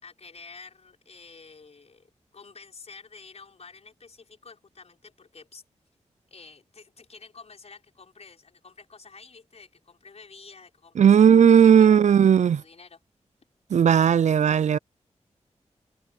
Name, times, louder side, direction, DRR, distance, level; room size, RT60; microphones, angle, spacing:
voice 1, 0.0-5.6 6.3-12.0 12.3-13.0, left 4 dB, 60° left, 5.0 m, -49 dB
voice 2, 11.0-12.6 13.7-14.8, right 8 dB, 75° right, 0.5 m, -16 dB
cardioid pair, 60°, 12 cm